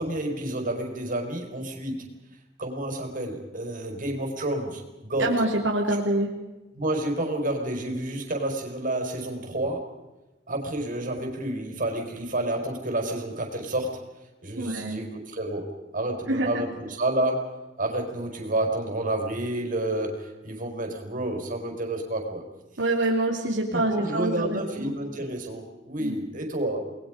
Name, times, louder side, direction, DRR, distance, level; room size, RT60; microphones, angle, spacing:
voice 1, 0.0-2.0 2.6-5.3 6.7-9.9 10.5-14.0 14.4-22.4 23.7-26.8, right 1 dB, 45° right, 3 dB, 5.1 m, -30 dB
voice 2, 5.2-6.3 14.6-15.0 16.3-16.5 22.8-24.9 26.0-26.1, right 2 dB, 85° right, 0 dB, 3.1 m, -26 dB
29.5 x 21.0 x 5.1 m, 1.1 s
head